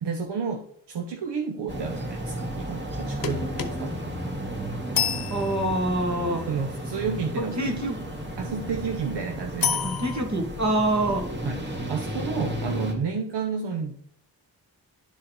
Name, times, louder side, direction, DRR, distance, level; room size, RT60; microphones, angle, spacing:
voice 1, 0.0-4.0 6.5-7.8 8.4-9.9 11.4-14.0, right 5 dB, 70° right, 4 dB, 0.8 m, -31 dB
sound 1, 1.7-12.9, right 1 dB, 25° right, 2.0 m, -33 dB
sound 2, 3.2-6.2 9.6-10.2, left 7 dB, 55° left, 1.0 m, -30 dB
voice 2, 5.3-6.4 7.4-8.0 9.8-11.2, right 1 dB, 40° right, 3 dB, 2.0 m, -26 dB
10.5 x 4.1 x 4.0 m, 0.64 s
cardioid pair, 60°, 42 cm